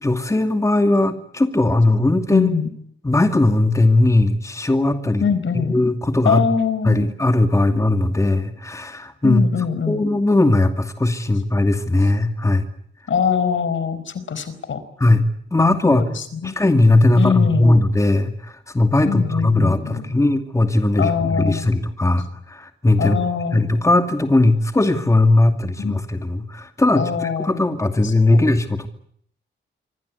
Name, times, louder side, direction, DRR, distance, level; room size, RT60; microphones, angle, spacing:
voice 1, 0.0-2.5 3.0-5.2 5.5-6.4 6.8-9.5 9.9-12.7 15.0-16.0 16.4-23.2 23.5-28.9, left 2 dB, 15° left, 6 dB, 2.5 m, -18 dB
voice 2, 2.3-2.7 5.2-5.7 6.2-7.2 9.2-10.0 13.1-14.8 15.6-16.6 17.1-17.7 19.0-20.1 21.0-21.7 23.0-23.7 25.8-25.9 26.9-27.6 28.0-28.4, left 6 dB, 70° left, 14 dB, 4.8 m, -23 dB
26.5 x 25.0 x 8.4 m, 0.67 s
wide cardioid pair, 125°, 21 cm